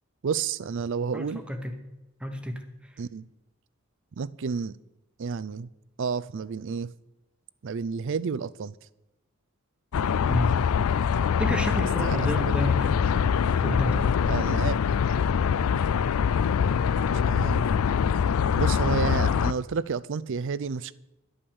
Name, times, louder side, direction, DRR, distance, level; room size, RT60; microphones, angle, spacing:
voice 1, 0.2-1.4 3.0-3.3 4.2-4.8 5.2-5.7 6.0-6.9 7.6-8.7 12.0-12.2 12.4-12.5 14.3-14.8 17.1-17.6 18.6-20.9, right 5 dB, 60° right, 0.4 m, -30 dB
voice 2, 1.1-1.8 2.2-3.0 10.3-10.6 11.4-13.1 13.6-14.1, equal, 5° right, 1.0 m, -30 dB
sound 1, 9.9-19.5, left 7 dB, 85° left, 0.4 m, -24 dB
11.0 x 8.8 x 7.0 m
head